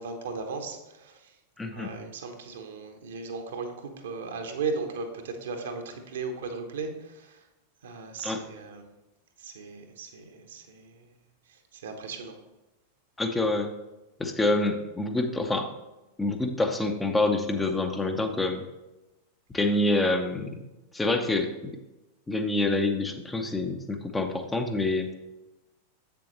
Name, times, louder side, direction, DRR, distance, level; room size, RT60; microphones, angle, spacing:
voice 1, 0.0-1.3 1.7-7.4 7.8-8.8 9.4-11.1 11.5-12.3, right 4 dB, 60° right, 5 dB, 1.0 m, -37 dB
voice 2, 1.6-1.9 8.2-8.4 13.2-13.7 14.2-15.7 16.2-18.6 19.5-20.6 20.9-21.7 22.3-25.1, left 2 dB, 10° left, 5 dB, 0.7 m, -27 dB
7.6 x 6.9 x 3.1 m, 1.0 s
figure-of-eight pair, 90°, 0 cm